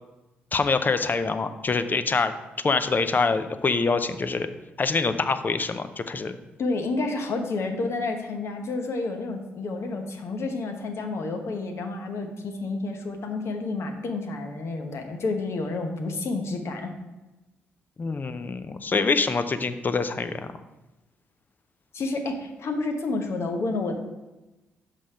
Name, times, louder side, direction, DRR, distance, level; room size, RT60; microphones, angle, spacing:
voice 1, 0.5-2.3 2.6-4.5 4.8-6.4 18.0-20.5, left 4 dB, 35° left, 10 dB, 0.6 m, -25 dB
voice 2, 6.6-16.9 21.9-24.0, left 3 dB, 55° left, 4 dB, 1.0 m, -30 dB
5.4 x 5.0 x 5.4 m, 1.0 s
hypercardioid pair, 45°, 5 cm